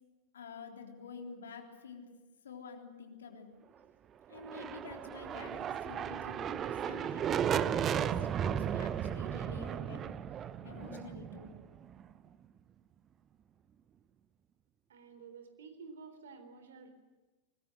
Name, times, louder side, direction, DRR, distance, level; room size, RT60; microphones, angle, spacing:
voice 1, 0.3-2.1 2.4-3.5 4.3-10.1 10.6-11.6, left 5 dB, 65° left, 3 dB, 3.6 m, -49 dB
sound 1, 4.3-12.1, right 9 dB, 25° right, 0.8 m, -35 dB
voice 2, 14.9-16.9, right 5 dB, 65° right, 7 dB, 3.7 m, -51 dB
24.5 x 21.0 x 7.9 m, 1.2 s
figure-of-eight pair, 90°, 0 cm